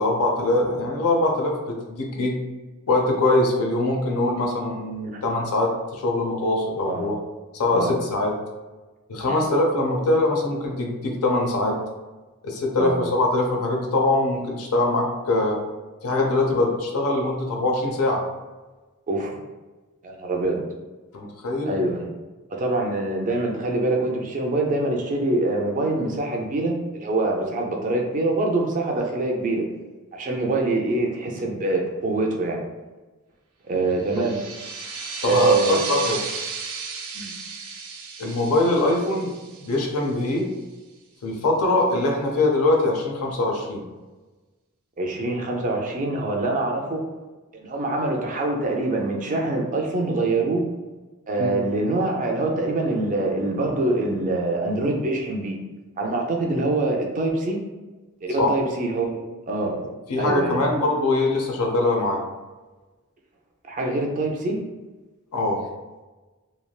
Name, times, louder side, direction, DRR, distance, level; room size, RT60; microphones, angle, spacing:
voice 1, 0.0-2.4 2.9-7.2 7.5-8.3 9.1-11.8 12.4-15.6 16.0-18.2 21.1-21.8 33.9-34.2 35.2-36.2 38.2-39.3 39.6-40.5 41.2-43.8 51.4-51.5 58.4-58.5 60.1-62.2 65.3-65.7, left 2 dB, 85° left, 1 dB, 0.6 m, -23 dB
voice 2, 19.1-19.4 20.0-20.7 21.6-22.1 22.5-29.6 30.1-32.6 33.6-34.4 35.2-36.0 37.1-37.3 45.0-47.0 47.5-50.7 51.3-55.6 56.0-57.6 58.2-59.8 60.2-60.7 63.7-64.6, right 2 dB, 35° right, 1 dB, 0.4 m, -24 dB
sound 1, 34.0-40.3, right 4 dB, 85° right, 0.6 m, -34 dB
3.2 x 2.3 x 2.3 m, 1.2 s
head